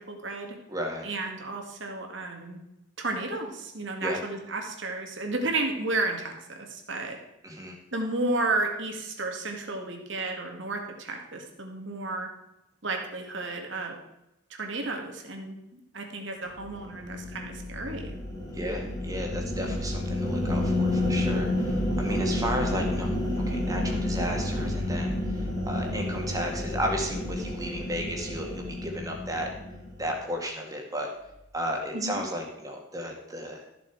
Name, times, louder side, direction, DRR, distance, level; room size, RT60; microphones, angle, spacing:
voice 1, 0.1-0.5 1.0-2.6 3.0-6.3 6.7-7.2 7.9-12.3 12.8-14.0 14.5-15.6 15.9-18.2 31.9-32.2, right 2 dB, 65° right, 3 dB, 2.0 m, -32 dB
voice 2, 0.7-1.1 4.0-4.2 7.4-7.8 18.5-23.2 23.5-29.5 30.0-31.1 31.5-33.6, equal, 15° right, 1 dB, 1.9 m, -33 dB
sound 1, 16.6-30.1, left 1 dB, 20° left, 2.2 m, -30 dB
13.5 x 7.1 x 4.7 m, 0.88 s
head